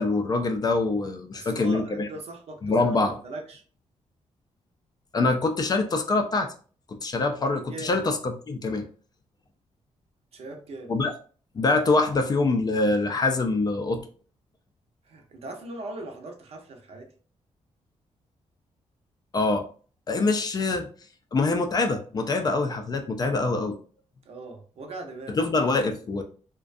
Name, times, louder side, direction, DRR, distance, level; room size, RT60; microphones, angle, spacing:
voice 1, 0.0-2.1 2.6-3.2 5.1-6.5 6.9-8.8 10.9-11.1 11.6-14.1 19.3-19.6 20.1-20.9 21.3-23.8 25.4-26.2, left 3 dB, 35° left, 5 dB, 0.3 m, -24 dB
voice 2, 1.3-3.6 7.7-8.0 10.3-10.9 15.1-17.1 24.3-25.4, right 2 dB, 55° right, 3 dB, 0.6 m, -39 dB
2.4 x 2.2 x 2.5 m, 0.41 s
wide cardioid pair, 135°, 12 cm